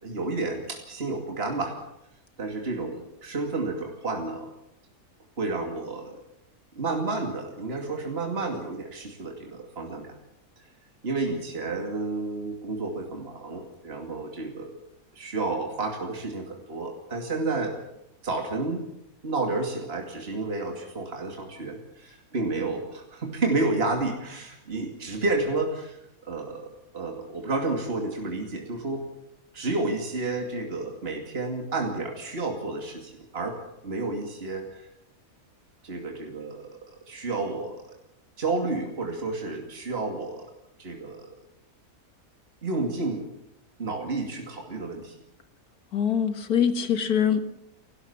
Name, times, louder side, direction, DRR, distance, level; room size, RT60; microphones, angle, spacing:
voice 1, 0.0-1.8 2.4-4.5 5.4-6.2 6.8-10.2 11.0-14.8 15.1-17.8 18.2-18.8 19.2-26.0 26.2-29.0 29.5-34.9 35.8-37.8 38.4-40.5 40.8-41.3 42.6-43.3 43.8-45.2, right 3 dB, 40° right, 2 dB, 2.7 m, -31 dB
voice 2, 45.9-47.5, left 8 dB, 90° left, 9 dB, 2.1 m, -24 dB
29.5 x 12.5 x 7.2 m, 0.81 s
omnidirectional pair, 1.6 m